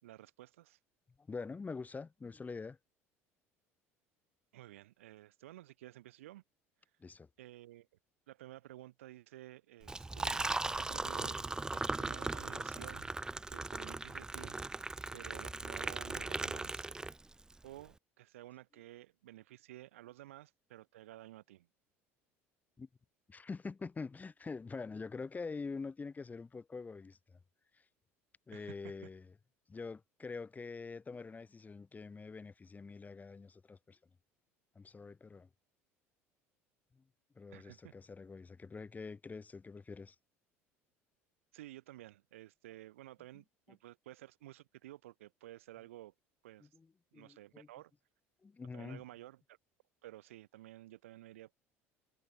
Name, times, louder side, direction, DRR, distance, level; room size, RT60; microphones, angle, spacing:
voice 1, 0.0-0.8 4.5-6.4 7.4-7.9 8.3-13.2 13.5-14.6 15.1-16.9 17.6-21.7 28.5-28.9 37.5-37.9 41.5-46.1 46.4-46.7 47.1-47.9 48.7-49.6 50.0-51.5, right 15 dB, 70° right, 4.8 m, -53 dB
voice 2, 1.3-2.8 7.0-7.3 16.2-16.3 22.8-22.9 23.3-27.4 28.5-29.3 29.7-34.0 34.7-35.5 36.9-37.0 37.4-40.1 46.6-46.9 47.1-47.7 48.4-49.0, left 4 dB, 20° left, 4.4 m, -45 dB
Liquid, 9.8-17.5, right 2 dB, 10° right, 0.3 m, -38 dB
figure-of-eight pair, 65°, 7 cm